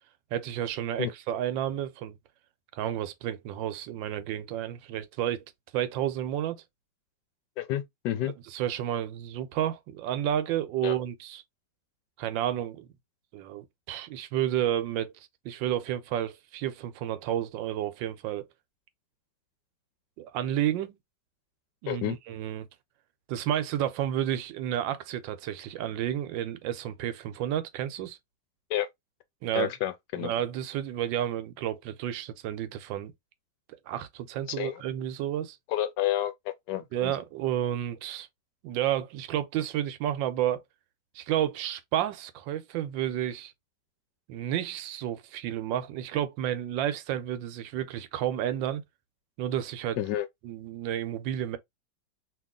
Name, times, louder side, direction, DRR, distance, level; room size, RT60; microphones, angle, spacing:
voice 1, 0.3-2.1 2.7-5.4 5.7-6.6 8.5-11.4 12.2-12.9 13.3-18.5 20.2-21.0 21.8-22.7 23.3-28.2 29.4-29.7 30.2-33.1 33.9-35.6 36.9-38.3 38.6-40.6 41.1-43.5 44.3-48.8 49.4-50.0 50.4-51.6, right 11 dB, 90° right, 1.3 m, -31 dB
voice 2, 7.6-8.3 10.8-11.0 21.9-22.2 28.7-28.9 29.5-30.3 34.5-34.8 35.7-37.2 50.0-50.3, left 12 dB, 75° left, 1.1 m, -30 dB
2.9 x 2.8 x 3.6 m
omnidirectional pair, 2.0 m